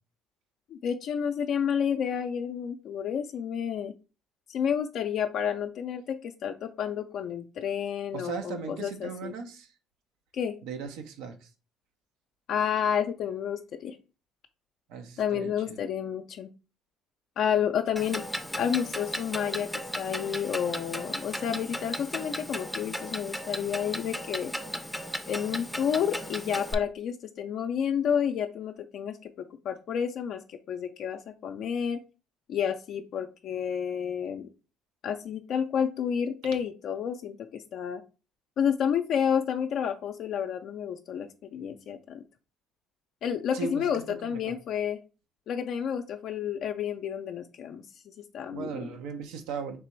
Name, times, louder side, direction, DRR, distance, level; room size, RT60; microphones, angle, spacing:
voice 1, 0.7-3.9 4.5-9.3 10.3-10.5 12.5-14.0 15.2-16.5 17.4-18.2 18.6-24.5 25.3-32.0 32.5-34.5 35.0-38.0 38.6-42.2 43.2-45.0 45.5-48.0 48.3-48.9, left 8 dB, 60° left, 5 dB, 0.4 m, -30 dB
voice 2, 8.1-9.7 10.6-11.4 14.9-15.8 43.5-43.9 44.5-44.6 48.5-49.8, right 5 dB, 80° right, 5 dB, 0.6 m, -37 dB
Clock, 18.0-26.7, equal, ahead, 0.5 m, -36 dB
3.3 x 3.0 x 4.4 m, 0.33 s
supercardioid pair, 80°, 0 cm